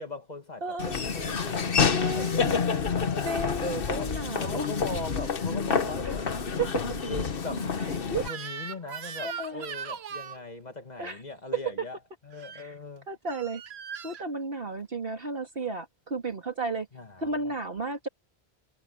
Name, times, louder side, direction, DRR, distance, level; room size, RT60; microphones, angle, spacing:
voice 1, 0.0-3.2 3.6-6.3 6.9-12.0 12.2-13.1 16.9-17.3, left 2 dB, 40° left, 2.0 m, -39 dB
voice 2, 0.6-1.0 1.9-2.6 3.2-4.7 6.0-6.1 6.6-6.8 7.8-8.3 9.2-9.6 11.0-11.2 11.5-11.9 12.5-12.7 13.1-13.6 14.0-16.9 17.2-18.1, right 3 dB, 65° right, 3.1 m, -33 dB
Laughter / Walk footsteps, 0.8-8.3, left 5 dB, 60° left, 1.3 m, -28 dB
Crying sobbing / Screech, 8.2-10.4 12.3-12.6 13.3-14.3, right 7 dB, 80° right, 1.2 m, -39 dB
omnidirectional pair, 1.1 m